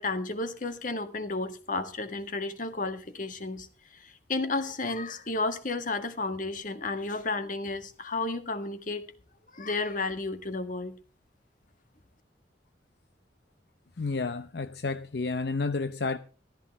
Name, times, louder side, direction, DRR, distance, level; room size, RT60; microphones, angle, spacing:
voice 1, 0.0-3.7 3.9-9.1 9.5-11.0, left 3 dB, 50° left, 1.7 m, -32 dB
voice 2, 14.0-16.2, left 3 dB, 65° left, 0.7 m, -31 dB
15.0 x 13.5 x 3.0 m
head